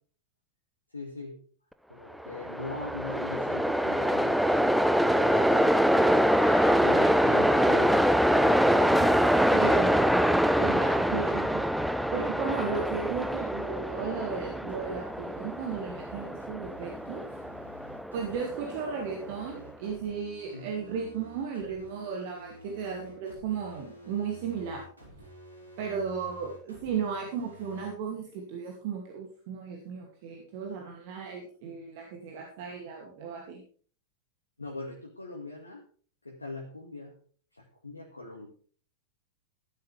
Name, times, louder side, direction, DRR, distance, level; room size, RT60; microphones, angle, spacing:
voice 1, 0.9-1.4 1.9-9.2 20.5-20.7 34.6-35.9 36.2-37.1 37.5-38.5, left 2 dB, 80° left, 0 dB, 2.0 m, -41 dB
Train, 2.2-19.4, equal, ahead, 0.7 m, -25 dB
voice 2, 9.5-10.0 10.6-11.6 12.1-17.2 18.1-24.9 25.8-33.6, right 6 dB, 50° right, 1 dB, 2.5 m, -35 dB
sound 1, 11.3-27.9, right 1 dB, 80° right, 5.4 m, -51 dB
14.0 x 11.5 x 3.4 m, 0.43 s
figure-of-eight pair, 90°, 0 cm